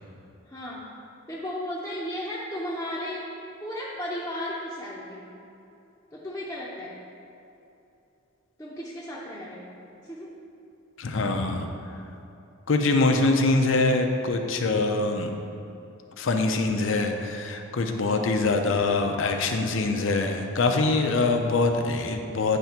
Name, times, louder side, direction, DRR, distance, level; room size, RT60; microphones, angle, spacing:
voice 1, 0.5-0.9 1.3-3.3 3.6-5.3 6.1-7.0 8.6-9.7 10.0-10.3, left 1 dB, 10° left, -8 dB, 0.7 m, -34 dB
voice 2, 11.0-11.7 12.7-15.3 16.2-22.6, left 3 dB, 65° left, 4 dB, 0.6 m, -24 dB
8.9 x 3.4 x 5.7 m, 2.8 s
head